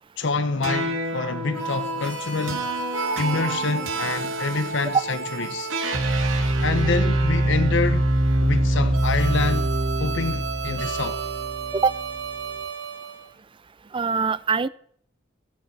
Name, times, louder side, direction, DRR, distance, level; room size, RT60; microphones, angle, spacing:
voice 1, 0.2-2.7 3.2-5.7 6.6-8.1 8.4-9.7 10.0-11.2, left 3 dB, 65° left, 0.8 m, -27 dB
sound 1, 0.6-13.1, right 2 dB, 80° right, 2.0 m, -25 dB
voice 2, 13.9-14.7, right 5 dB, 25° right, 0.4 m, -23 dB
16.0 x 8.6 x 4.7 m
head